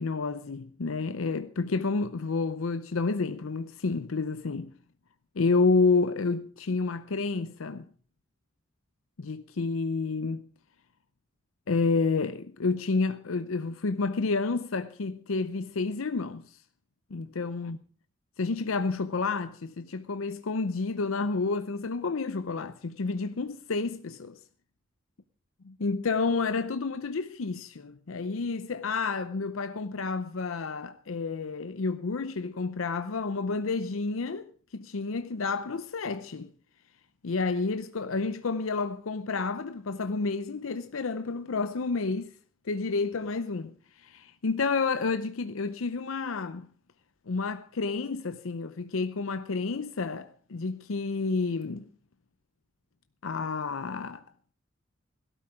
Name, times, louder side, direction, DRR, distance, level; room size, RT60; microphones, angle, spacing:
voice 1, 0.0-4.7 5.4-7.9 9.2-10.5 11.7-16.6 17.1-17.8 18.4-24.4 25.6-34.5 34.7-36.5 37.2-42.3 42.6-46.7 47.3-51.9 53.2-54.2, left 4 dB, 85° left, 0.6 m, -30 dB
17.5 x 12.5 x 4.9 m
head